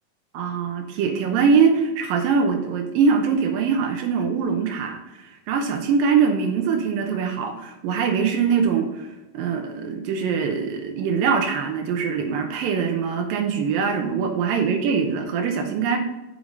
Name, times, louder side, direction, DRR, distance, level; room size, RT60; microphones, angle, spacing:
voice 1, 0.3-9.1 9.3-16.0, right 6 dB, 90° right, 3 dB, 2.0 m, -22 dB
8.1 x 6.8 x 5.3 m, 1.0 s
omnidirectional pair, 5.2 m